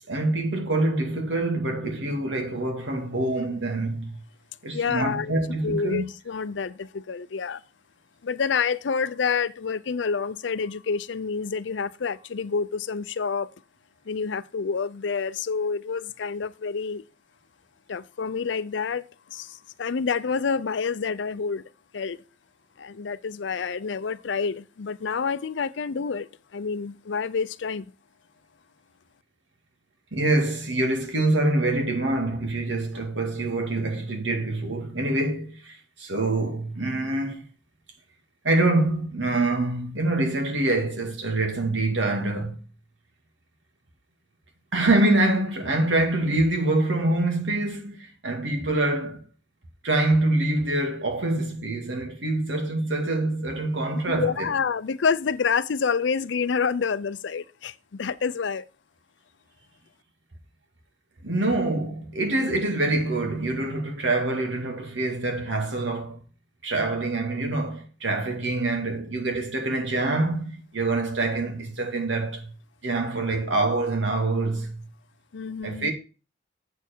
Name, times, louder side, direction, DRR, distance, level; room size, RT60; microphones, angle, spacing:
voice 1, 0.1-4.2 4.6-6.0 30.1-37.4 38.4-42.6 44.7-49.2 49.8-54.5 61.2-66.2 66.6-72.5 72.8-74.9 75.6-75.9, right 2 dB, 80° right, 2.2 m, -25 dB
voice 2, 4.7-5.3 5.6-7.6 8.2-13.5 14.1-17.0 17.9-21.6 21.9-22.2 22.8-27.9 54.1-58.7 75.3-75.9, left 5 dB, 75° left, 0.5 m, -28 dB
8.1 x 7.0 x 4.5 m
head